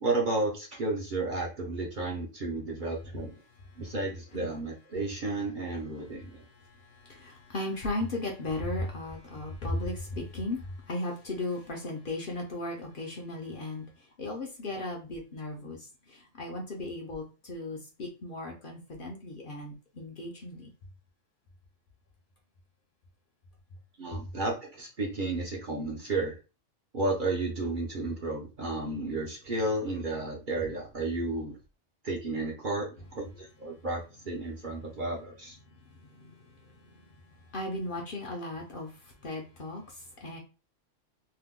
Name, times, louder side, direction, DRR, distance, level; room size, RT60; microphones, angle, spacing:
voice 1, 0.0-3.3 3.8-6.4 24.0-26.4 26.9-31.6 32.0-35.5, right 2 dB, 50° right, 0.7 m, -32 dB
voice 2, 6.2-20.7 24.1-24.2 35.7-40.4, left 2 dB, 55° left, 0.7 m, -37 dB
2.8 x 2.1 x 3.5 m
omnidirectional pair, 1.3 m